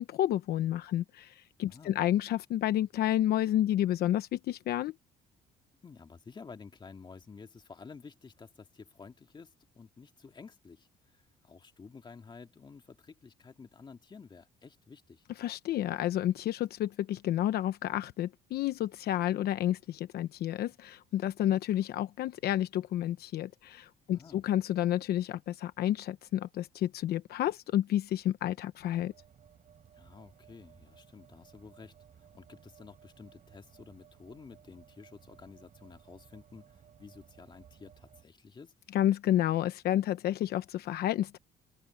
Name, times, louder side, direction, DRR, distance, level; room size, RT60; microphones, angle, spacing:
voice 1, 0.0-4.9 15.4-29.1 38.9-41.4, left 12 dB, 70° left, 1.0 m, -30 dB
voice 2, 5.8-15.2 24.1-24.4 29.9-38.7, left 5 dB, 25° left, 2.2 m, -52 dB
sound 1, 28.9-38.3, right 8 dB, 45° right, 5.6 m, -59 dB
open air
cardioid pair, 110°, 17 cm